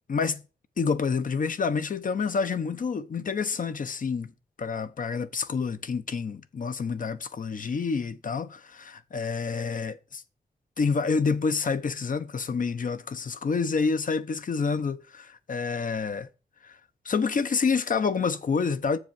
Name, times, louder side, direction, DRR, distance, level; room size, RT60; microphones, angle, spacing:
voice 1, 0.1-0.4 0.8-4.3 4.6-10.2 10.8-16.3 16.6-16.8 17.0-19.0, left 5 dB, 50° left, 0.9 m, -28 dB
7.9 x 7.0 x 7.0 m
wide cardioid pair, 160°, 18 cm